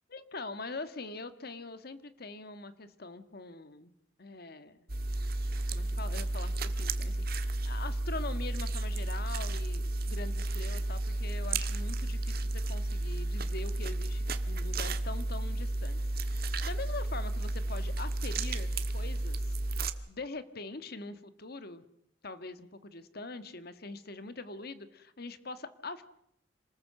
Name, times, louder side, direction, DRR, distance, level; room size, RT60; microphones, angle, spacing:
voice 1, 0.1-3.9 4.2-4.8 5.7-19.6 20.1-21.8 22.2-26.0, left 3 dB, 55° left, 11 dB, 1.6 m, -43 dB
sound 1, 4.9-19.9, right 2 dB, 55° right, 1.5 m, -32 dB
27.0 x 20.0 x 7.7 m, 0.73 s
head